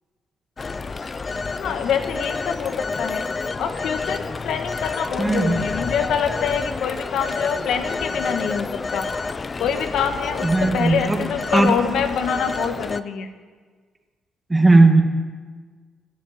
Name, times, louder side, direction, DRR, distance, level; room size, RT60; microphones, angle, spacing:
Telephone, 0.6-13.0, left 4 dB, 30° left, 0.6 m, -29 dB
voice 1, 1.5-3.2 3.6-9.1 9.6-10.5 10.7-13.3, left 7 dB, 75° left, 7 dB, 1.5 m, -25 dB
voice 2, 5.2-5.7 10.4-11.2 11.5-11.7 14.5-15.0, right 2 dB, 15° right, 4 dB, 1.7 m, -16 dB
13.5 x 11.0 x 9.3 m, 1.5 s
cardioid pair, 100°, 0 cm